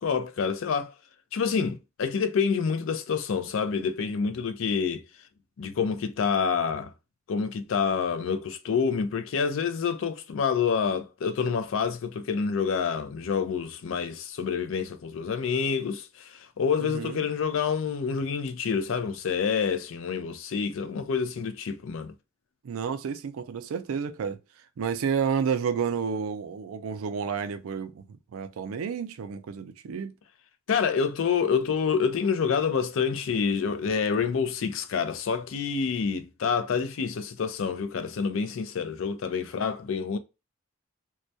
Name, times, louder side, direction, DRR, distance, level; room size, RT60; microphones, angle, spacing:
voice 1, 0.0-0.9 1.3-5.0 5.6-6.9 7.3-22.1 30.7-40.2, left 6 dB, 65° left, 0.4 m, -27 dB
voice 2, 16.8-17.2 22.6-24.4 24.8-28.1 28.3-30.1, right 6 dB, 85° right, 0.4 m, -30 dB
2.2 x 2.1 x 2.6 m
head